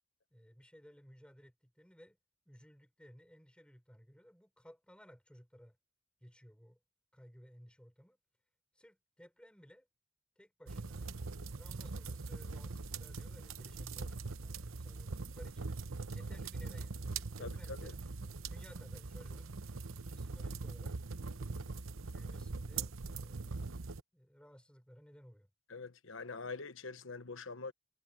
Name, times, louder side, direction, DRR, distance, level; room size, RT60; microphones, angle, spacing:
voice 1, 0.3-2.2 2.4-5.8 6.2-6.8 7.1-8.2 8.7-9.9 10.4-11.1 11.5-15.7 16.1-18.0 18.5-19.5 20.1-21.0 21.2-23.7 24.1-25.5, equal, 5° left, 6.2 m, -58 dB
sound 1, 10.7-24.0, right 4 dB, 80° right, 0.9 m, -42 dB
voice 2, 17.4-17.9 25.7-27.7, left 4 dB, 70° left, 1.2 m, -44 dB
head